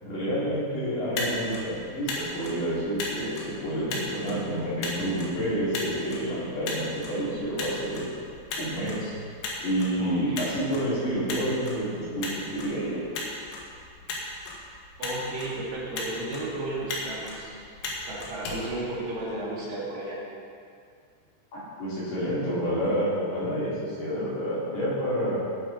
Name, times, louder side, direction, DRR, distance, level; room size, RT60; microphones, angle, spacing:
voice 1, 0.0-8.1 8.6-9.1 9.6-13.0 21.5-25.4, equal, 55° left, -9 dB, 5.4 m, -29 dB
Motor vehicle (road), 0.9-19.5, left 2 dB, 75° left, 4.1 m, -37 dB
voice 2, 10.0-10.5 15.0-17.5 18.1-20.2, right 2 dB, 55° right, -6 dB, 3.6 m, -33 dB
18.0 x 9.1 x 4.3 m, 2.3 s
omnidirectional pair, 5.5 m